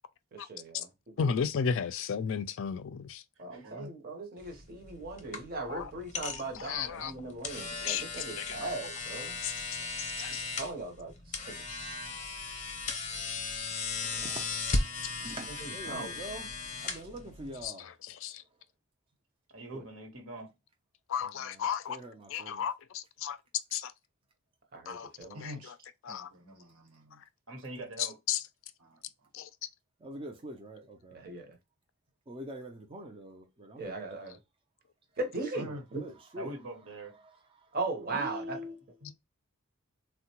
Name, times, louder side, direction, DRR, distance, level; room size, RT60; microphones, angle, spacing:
voice 1, 0.3-0.9 1.2-1.3 3.4-9.4 10.6-11.4 15.4-16.2 19.7-19.8 24.7-25.4 31.1-31.6 33.8-34.4 35.2-36.0 37.7-38.6, right 3 dB, 45° right, 0.7 m, -38 dB
voice 2, 1.2-3.2 5.7-5.9 6.5-7.1 7.8-8.6 9.4-9.5 10.0-10.5 17.6-18.4 21.1-22.0 22.3-23.4 23.7-23.9 24.9-25.1 25.4-25.7 26.0-26.3 28.0-28.4 29.3-29.7, left 7 dB, 60° left, 0.3 m, -34 dB
sound 1, 4.4-17.7, left 3 dB, 35° left, 0.7 m, -37 dB
voice 3, 14.0-14.8 15.2-16.5 16.8-17.9 21.9-22.6 30.0-31.2 32.3-33.9 36.0-36.5, right 1 dB, 25° right, 0.4 m, -45 dB
voice 4, 19.5-20.5 27.5-28.2 36.3-37.2 39.0-39.1, right 1 dB, 60° right, 1.0 m, -43 dB
voice 5, 25.3-25.7 26.1-27.2 28.8-29.3 35.5-35.8 38.1-39.1, equal, 85° right, 1.1 m, -44 dB
3.6 x 2.1 x 2.8 m
head